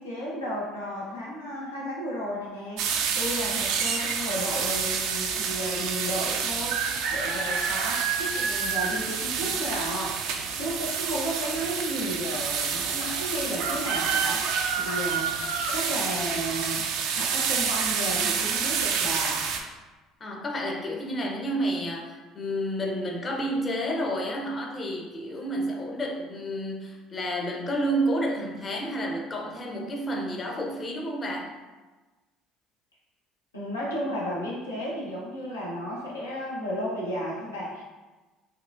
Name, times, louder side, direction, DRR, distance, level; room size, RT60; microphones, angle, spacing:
voice 1, 0.0-10.2 10.6-15.5 15.7-19.4 20.7-20.8 33.5-37.8, equal, 90° left, -6 dB, 0.9 m, -33 dB
sound 1, 2.8-19.6, right 6 dB, 65° right, 0.4 m, -28 dB
voice 2, 20.2-31.5, right 1 dB, 35° left, 1 dB, 0.7 m, -30 dB
4.6 x 2.4 x 2.4 m, 1.2 s
hypercardioid pair, 60°, 0 cm